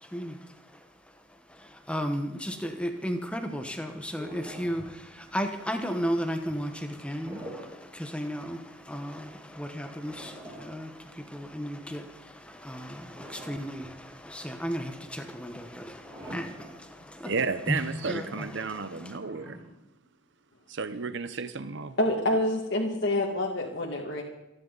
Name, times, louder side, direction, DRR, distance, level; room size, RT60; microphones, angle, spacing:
voice 1, 0.0-17.3 17.7-19.2, equal, 5° left, 6 dB, 1.1 m, -35 dB
sound 1, 4.1-5.1 7.0-7.9 8.2-8.3 10.0-11.5 13.0-14.0 14.4-14.5 16.0-16.9 17.3-17.4 19.1-20.1, equal, 15° right, 7.4 m, -45 dB
voice 2, 17.2-19.6 20.7-22.0, right 4 dB, 60° right, 11 dB, 0.8 m, -32 dB
voice 3, 22.0-24.2, left 1 dB, 55° left, -2 dB, 2.0 m, -27 dB
28.5 x 11.0 x 4.0 m, 0.94 s
head